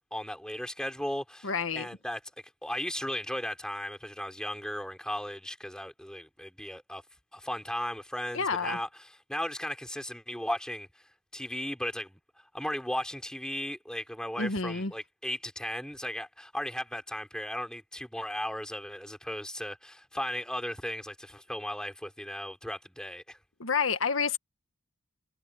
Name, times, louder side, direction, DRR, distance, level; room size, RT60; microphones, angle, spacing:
voice 1, 0.1-2.2 2.6-7.0 7.3-11.0 11.3-12.2 12.5-23.4, left 1 dB, 5° left, 3.9 m, -36 dB
voice 2, 1.4-1.9 8.3-8.8 14.4-14.9 23.6-24.4, left 5 dB, 80° left, 1.5 m, -29 dB
head